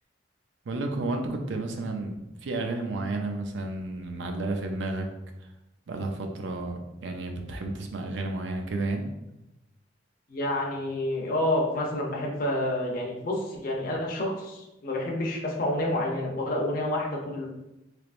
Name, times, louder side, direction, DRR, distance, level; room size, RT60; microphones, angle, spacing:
voice 1, 0.7-5.1 5.9-9.1, right 2 dB, 85° right, 4 dB, 0.5 m, -32 dB
voice 2, 10.3-17.5, left 1 dB, 50° left, -1 dB, 0.6 m, -29 dB
3.3 x 3.0 x 2.5 m, 0.93 s
head